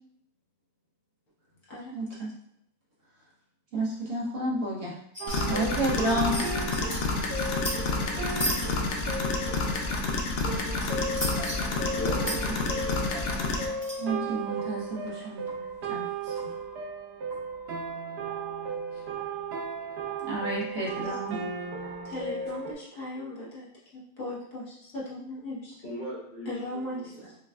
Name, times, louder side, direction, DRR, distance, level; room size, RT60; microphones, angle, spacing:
voice 1, 1.9-2.3 3.7-4.9 5.5-6.4 12.7-12.8 14.0-15.5 15.9-16.5 20.3-21.4, right 1 dB, 55° right, -5 dB, 1.2 m, -31 dB
sound 1, 5.1-5.4 5.7-5.8 6.0-7.0 7.3-7.7 8.3-8.7 10.8-11.6 12.2-12.4 13.8-14.0, right 1 dB, 10° right, 1.1 m, -33 dB
sound 2, 5.2-22.7, right 3 dB, 85° right, 0.5 m, -35 dB
sound 3, 5.3-13.7, left 3 dB, 75° left, 0.5 m, -29 dB
voice 2, 11.9-13.2 25.8-26.5 26.7-27.3, equal, 30° left, -7 dB, 1.3 m, -38 dB
voice 3, 22.0-25.8 26.4-27.4, left 1 dB, 60° left, -7 dB, 1.5 m, -38 dB
5.6 x 2.3 x 2.3 m, 0.73 s
omnidirectional pair, 1.7 m